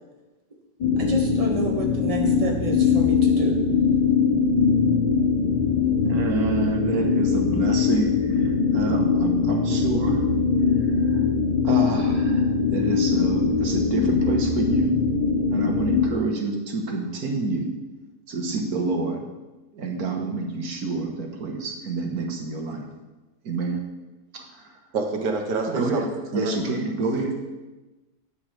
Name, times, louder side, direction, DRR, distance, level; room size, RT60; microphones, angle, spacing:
sound 1, 0.8-16.1, left 5 dB, 85° left, 1.8 m, -22 dB
voice 1, 1.0-3.6, right 2 dB, 20° right, -1 dB, 1.6 m, -30 dB
voice 2, 6.0-10.3 11.6-15.1 15.5-17.7 18.3-19.3 19.7-22.9 23.4-23.8 24.3-24.7 25.7-26.1 26.3-27.4, right 3 dB, 65° right, 2 dB, 1.7 m, -28 dB
voice 3, 24.9-26.1 26.3-26.5, right 3 dB, 90° right, 2 dB, 1.8 m, -27 dB
13.0 x 8.8 x 3.3 m, 1.1 s
omnidirectional pair, 1.8 m